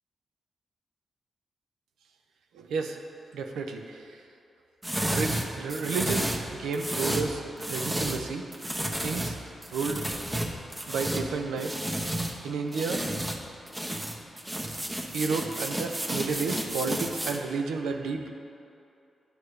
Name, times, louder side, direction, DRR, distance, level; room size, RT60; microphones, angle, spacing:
voice 1, 2.5-3.0 3.3-4.2 5.1-7.4 7.7-8.5 9.0-9.4 9.7-10.0 10.9-11.8 12.4-13.0 15.1-18.3, right 4 dB, 85° right, 4 dB, 0.4 m, -31 dB
sound 1, 4.8-8.3 8.5-12.3 12.7-13.4 13.7-17.4, right 1 dB, 20° right, 1.0 m, -32 dB
11.0 x 4.5 x 3.2 m, 2.7 s
supercardioid pair, 40°, 0 cm